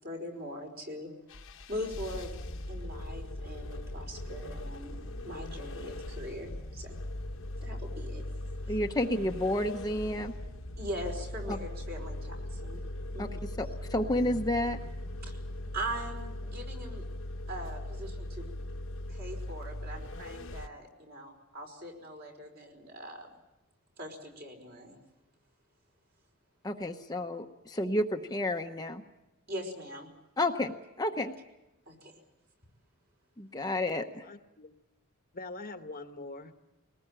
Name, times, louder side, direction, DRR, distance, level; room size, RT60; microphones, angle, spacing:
voice 1, 0.0-1.1 1.7-2.3 2.7-4.9 5.2-6.9 7.6-8.2 10.8-12.9 13.1-13.3 15.2-15.4 15.7-17.0 17.5-18.4 19.1-23.3 24.0-25.0 29.5-30.1 31.9-32.1, equal, 45° right, 2 dB, 5.0 m, -41 dB
sound 1, 1.3-20.7, left 1 dB, 60° left, 1.1 m, -40 dB
sound 2, 1.9-16.2, equal, 60° right, 6.3 m, -54 dB
voice 2, 8.7-10.3 13.2-13.3 13.6-14.8 26.6-29.0 30.4-30.7 31.0-31.3 33.4-34.2, left 1 dB, 15° left, 4 dB, 0.9 m, -30 dB
voice 3, 34.1-34.7 35.3-36.5, left 2 dB, 40° left, 7 dB, 1.1 m, -43 dB
22.0 x 19.5 x 8.9 m, 0.95 s
head